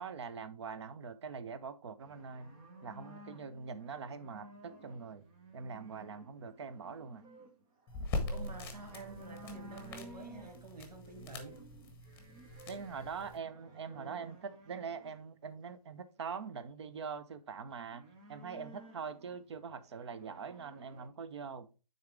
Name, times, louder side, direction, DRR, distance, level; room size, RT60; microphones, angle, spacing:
voice 1, 0.0-2.5 2.8-5.2 5.5-7.2 12.7-18.0 18.3-21.7, right 6 dB, 40° right, 0.7 m, -43 dB
sound 1, 2.0-15.2 17.7-21.1, right 1 dB, 10° right, 0.4 m, -54 dB
sound 2, 7.9-13.4, left 3 dB, 10° left, 1.0 m, -42 dB
voice 2, 8.3-11.6, right 3 dB, 70° right, 2.3 m, -49 dB
9.5 x 3.9 x 3.5 m
figure-of-eight pair, 145°, 21 cm